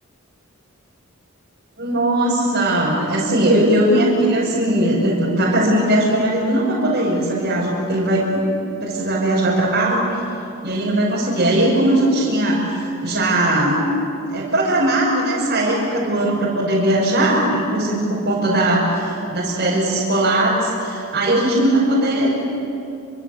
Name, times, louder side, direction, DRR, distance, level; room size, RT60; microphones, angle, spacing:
voice 1, 1.8-8.4 8.8-10.2 10.6-13.8 14.3-22.3, right 1 dB, 50° right, -6 dB, 6.3 m, -19 dB
28.5 x 25.0 x 8.3 m, 2.7 s
head